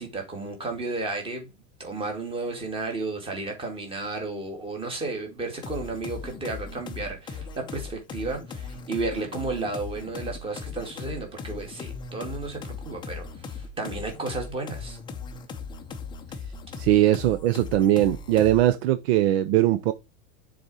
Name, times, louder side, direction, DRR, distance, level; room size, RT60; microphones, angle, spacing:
voice 1, 0.0-1.5 1.8-15.0, right 3 dB, 15° right, 2.1 m, -33 dB
sound 1, 5.6-18.8, left 5 dB, 10° left, 0.6 m, -38 dB
voice 2, 16.8-19.9, right 13 dB, 55° right, 0.6 m, -20 dB
6.9 x 4.1 x 4.7 m
supercardioid pair, 160°, 39 cm